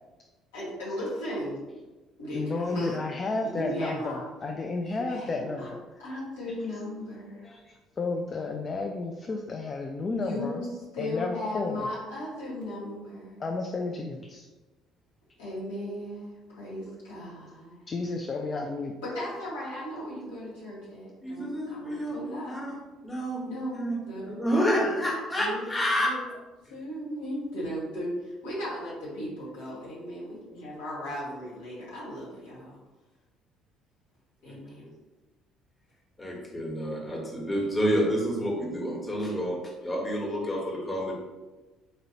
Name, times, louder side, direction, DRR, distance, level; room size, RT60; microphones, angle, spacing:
voice 1, 0.5-1.6 2.2-3.0 3.4-4.2 5.0-5.7 6.0-7.4 10.1-10.7 10.9-13.4 15.4-17.8 19.0-22.5 23.4-24.4 24.7-25.0 25.3-25.7 26.0-26.3 26.7-32.8 34.4-34.8, equal, 80° left, -8 dB, 1.4 m, -36 dB
voice 2, 2.3-5.8 7.4-10.7 11.0-11.9 13.4-14.5 17.9-18.9, left 3 dB, 40° left, 2 dB, 0.3 m, -32 dB
voice 3, 21.2-22.1 22.4-22.8 23.0-23.4 23.7-24.0 24.3-26.1 36.2-39.5 39.8-40.6 40.9-41.1, equal, 20° left, -3 dB, 1.2 m, -28 dB
4.1 x 2.6 x 2.9 m, 1.2 s
hypercardioid pair, 55°, 0 cm